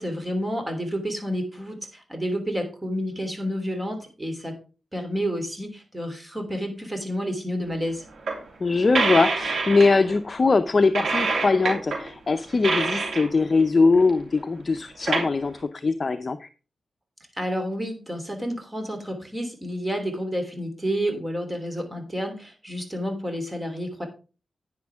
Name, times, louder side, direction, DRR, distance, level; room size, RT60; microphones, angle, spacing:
voice 1, 0.0-4.6 4.9-8.0 17.3-24.1, equal, 15° right, 4 dB, 3.2 m, -30 dB
sound 1, 7.9-8.0 8.3-8.4 8.9-10.2 10.9-12.1 12.5-13.6 13.9-14.1 14.4-14.5 14.8-15.3, right 3 dB, 85° right, 2.9 m, -26 dB
voice 2, 8.6-16.5, left 3 dB, 40° left, 9 dB, 0.6 m, -21 dB
10.5 x 9.5 x 3.6 m, 0.33 s
wide cardioid pair, 100°, 0 cm